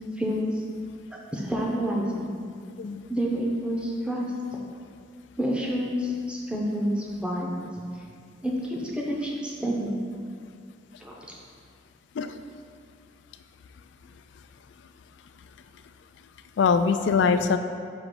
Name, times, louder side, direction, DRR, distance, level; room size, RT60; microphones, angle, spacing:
voice 1, 0.2-0.6 1.1-2.3 3.1-4.3 5.4-7.7 8.4-10.0 11.0-11.3, equal, 5° right, -3 dB, 0.6 m, -28 dB
voice 2, 16.6-17.6, left 5 dB, 65° left, 9 dB, 0.3 m, -22 dB
6.2 x 3.0 x 5.2 m, 2.2 s
head